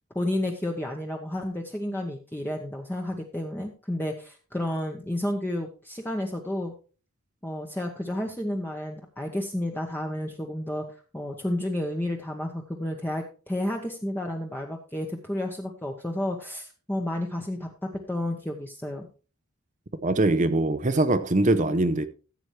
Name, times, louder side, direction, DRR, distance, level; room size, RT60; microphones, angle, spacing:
voice 1, 0.1-6.7 7.4-10.8 11.1-17.7 18.1-19.1, left 1 dB, 10° left, 0.9 m, -31 dB
voice 2, 20.0-22.1, right 2 dB, 35° right, 0.6 m, -22 dB
14.5 x 7.9 x 3.2 m
head